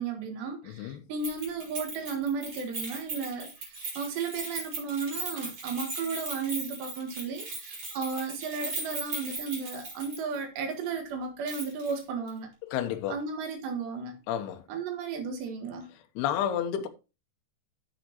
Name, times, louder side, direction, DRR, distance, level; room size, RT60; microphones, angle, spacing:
voice 1, 0.0-12.5 13.1-14.2 14.7-15.9, right 5 dB, 70° right, 3.7 m, -34 dB
voice 2, 0.6-1.0 12.7-13.2 14.3-14.6 16.2-16.9, left 9 dB, 75° left, 2.6 m, -30 dB
Keys jangling, 1.2-10.4 10.7-10.8 11.5-12.0 12.3-12.4, right 3 dB, 35° right, 4.2 m, -38 dB
10.5 x 7.2 x 3.0 m
omnidirectional pair, 5.5 m